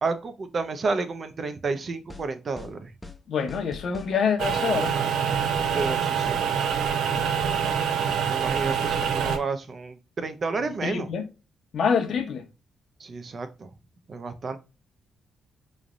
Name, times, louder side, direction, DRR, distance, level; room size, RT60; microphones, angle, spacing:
voice 1, 0.0-2.9 5.7-6.4 8.3-11.1 13.0-13.7 14.1-14.6, right 4 dB, 40° right, 0.5 m, -31 dB
sound 1, 2.1-2.3 2.6-2.7 3.0-3.2 3.5-4.1 4.4-4.6 4.9-5.0 5.3-6.0 6.3-6.4 6.7-6.9 7.2-7.8 8.1-8.3 8.6-8.7 9.0-9.4, left 3 dB, 10° left, 0.5 m, -41 dB
voice 2, 3.3-4.9 10.8-11.3 11.7-12.4, left 6 dB, 60° left, 0.8 m, -26 dB
sound 2, 4.4-9.4, right 7 dB, 85° right, 0.6 m, -25 dB
3.9 x 3.2 x 2.4 m
cardioid pair, 125°, 0 cm